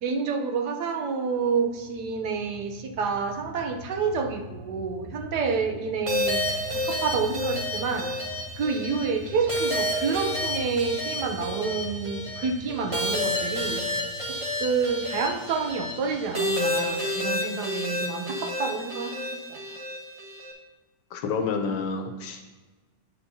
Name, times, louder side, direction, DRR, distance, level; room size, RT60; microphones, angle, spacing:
voice 1, 0.0-6.4 6.7-8.1 8.6-19.6, right 5 dB, 70° right, 5 dB, 1.2 m, -29 dB
sound 1, 1.4-16.8, left 1 dB, 35° left, 1.0 m, -43 dB
sound 2, 6.1-20.5, left 1 dB, 20° right, 1.0 m, -30 dB
voice 2, 21.1-22.5, left 5 dB, 80° left, 5 dB, 1.5 m, -29 dB
8.6 x 8.5 x 2.7 m, 1.2 s
omnidirectional pair, 1.9 m